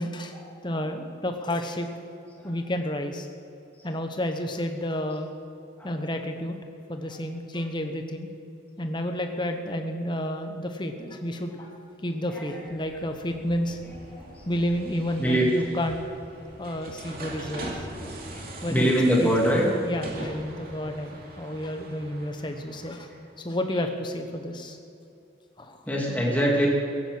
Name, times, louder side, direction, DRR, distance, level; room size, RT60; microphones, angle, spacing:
voice 1, 0.0-0.4 0.6-2.0 2.4-3.3 3.8-5.3 5.8-6.6 6.9-8.3 8.8-11.7 12.0-13.8 14.5-16.0 16.6-18.1 18.6-19.3 19.8-23.1 23.4-24.8 25.6-25.8, left 1 dB, 25° left, 5 dB, 1.1 m, -31 dB
sound 1, 12.6-23.3, right 1 dB, 50° right, 2.5 m, -42 dB
voice 2, 14.1-14.4 15.2-15.5 18.3-18.4 18.7-19.6 25.8-26.7, equal, 10° left, -3 dB, 2.6 m, -24 dB
17.0 x 9.0 x 7.8 m, 2.8 s
head